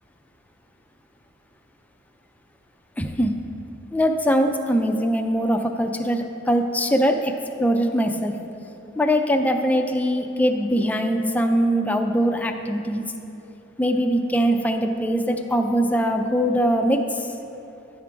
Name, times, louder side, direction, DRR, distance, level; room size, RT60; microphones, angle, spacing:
voice 1, 3.0-3.3 3.9-7.3 7.6-8.3 9.0-13.0 13.8-17.0, equal, 10° left, 5 dB, 0.3 m, -22 dB
10.0 x 3.7 x 4.6 m, 2.9 s
head